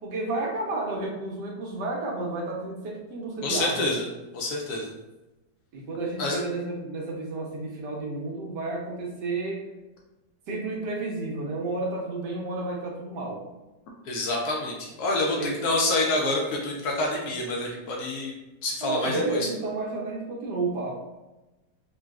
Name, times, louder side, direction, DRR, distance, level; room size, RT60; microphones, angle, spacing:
voice 1, 0.0-3.9 5.7-9.6 10.5-13.4 15.4-15.5 18.8-21.0, right 2 dB, 75° right, -2 dB, 1.3 m, -31 dB
voice 2, 3.4-4.1 4.3-4.9 6.2-6.4 14.1-18.3 18.6-19.5, left 2 dB, 70° left, -1 dB, 1.0 m, -27 dB
3.7 x 2.3 x 2.3 m, 1.0 s
omnidirectional pair, 1.9 m